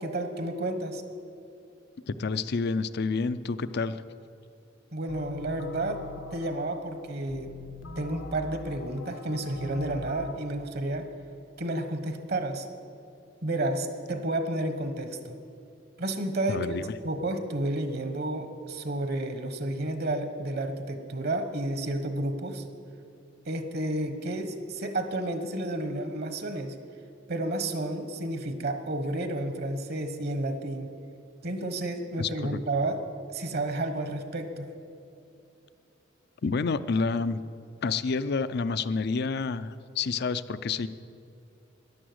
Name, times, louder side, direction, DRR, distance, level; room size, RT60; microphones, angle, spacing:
voice 1, 0.0-1.0 4.9-6.0 6.3-7.5 8.0-11.1 11.6-12.7 13.4-15.3 16.0-16.8 17.0-22.6 23.5-26.7 27.3-30.9 31.4-33.0 33.3-34.7, right 1 dB, 55° right, 8 dB, 1.2 m, -31 dB
voice 2, 2.1-4.0 16.5-16.9 32.2-32.6 36.4-37.4 37.8-40.9, left 4 dB, 55° left, 15 dB, 0.5 m, -29 dB
sound 1, 5.1-10.3, left 3 dB, 85° left, 1.3 m, -43 dB
12.5 x 11.0 x 7.9 m, 2.6 s
head